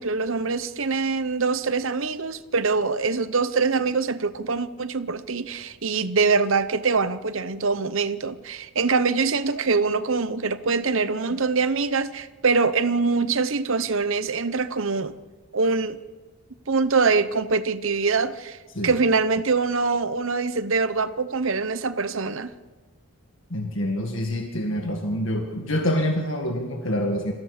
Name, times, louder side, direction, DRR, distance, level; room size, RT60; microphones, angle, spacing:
voice 1, 0.0-15.1 15.5-16.0 16.7-22.5, right 4 dB, 65° right, 13 dB, 0.9 m, -24 dB
voice 2, 23.5-27.3, left 1 dB, 60° left, 2 dB, 1.9 m, -26 dB
27.0 x 15.0 x 6.6 m, 1.4 s
head